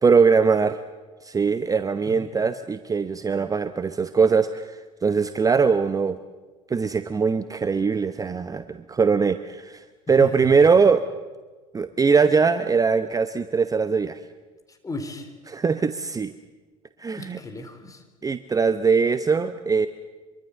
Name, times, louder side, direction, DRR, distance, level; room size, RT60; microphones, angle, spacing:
voice 1, 0.0-0.8 1.2-6.2 6.7-11.0 11.7-14.2 15.5-16.3 17.0-17.4 18.2-19.9, right 5 dB, 20° right, 12 dB, 0.9 m, -21 dB
voice 2, 10.1-10.7 14.7-15.3 17.2-18.0, left 2 dB, 20° left, 7 dB, 3.7 m, -36 dB
25.5 x 23.0 x 7.1 m, 1.3 s
figure-of-eight pair, 65°, 19 cm